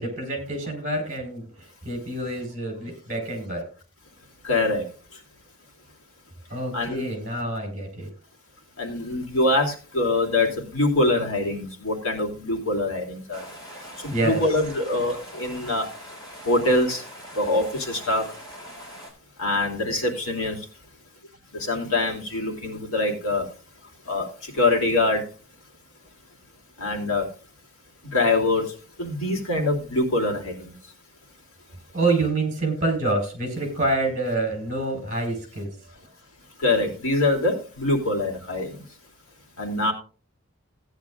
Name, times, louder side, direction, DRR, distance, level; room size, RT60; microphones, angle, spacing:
voice 1, 0.0-3.6 6.5-8.1 14.1-14.4 31.9-35.8, right 2 dB, 35° right, 3 dB, 4.3 m, -27 dB
voice 2, 4.4-4.8 6.7-7.0 8.8-13.4 14.0-15.9 16.5-17.0 17.4-18.2 19.4-20.6 21.6-23.4 24.1-24.3 24.6-25.2 26.8-27.3 28.1-28.7 29.0-30.7 36.6-38.7 39.6-39.9, left 2 dB, 70° left, 1 dB, 2.8 m, -24 dB
sound 1, 13.3-19.1, equal, 15° left, 5.0 m, -42 dB
16.5 x 9.9 x 2.4 m, 0.37 s
head